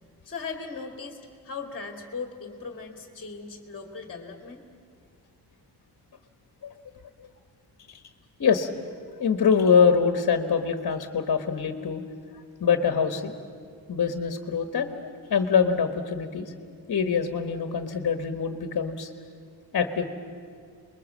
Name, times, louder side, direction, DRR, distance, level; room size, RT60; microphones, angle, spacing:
voice 1, 0.3-4.6, left 4 dB, 30° left, 3 dB, 1.9 m, -38 dB
voice 2, 8.4-8.7 9.2-12.0 12.6-13.4 13.9-16.5 16.9-19.1 19.7-20.1, left 6 dB, 50° left, 6 dB, 1.4 m, -24 dB
28.5 x 21.5 x 7.4 m, 2.2 s
wide cardioid pair, 120°, 41 cm